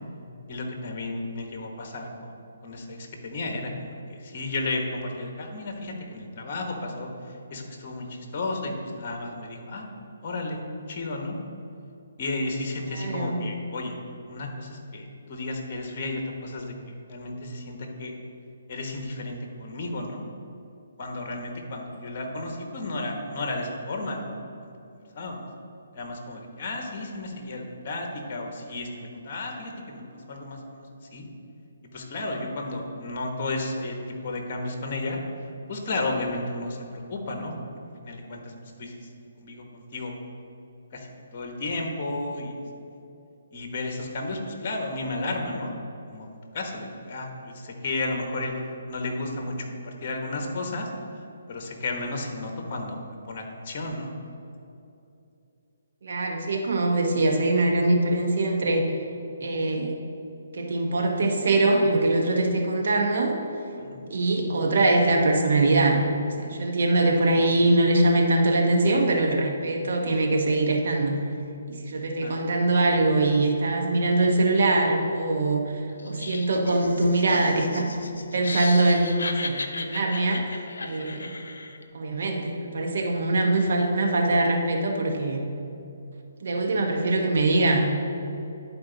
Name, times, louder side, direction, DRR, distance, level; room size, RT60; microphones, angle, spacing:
voice 1, 0.5-2.3 2.6-3.7 4.1-9.9 10.2-10.6 10.9-11.4 12.2-14.0 14.3-18.1 18.7-20.3 21.0-24.2 24.6-25.5 25.9-31.3 31.9-35.2 35.7-37.5 38.0-38.5 38.8-39.1 39.4-40.1 40.9-41.1 41.3-42.6 43.5-45.7 46.1-48.5 48.9-50.9 51.5-53.0 53.3-54.1 63.8-64.1 67.3-67.5 72.2-72.4, left 2 dB, 40° left, 2 dB, 1.2 m, -33 dB
voice 2, 13.0-13.4 56.0-58.9 59.4-59.9 60.5-63.4 64.1-66.0 66.4-71.2 71.7-75.6 76.0-77.9 78.3-81.3 81.9-85.5 86.4-87.9, right 2 dB, 65° right, 2 dB, 1.1 m, -23 dB
Laughter, 76.0-81.8, left 3 dB, 85° left, 0.7 m, -36 dB
11.0 x 4.2 x 3.9 m, 2.7 s
hypercardioid pair, 155°, 0 cm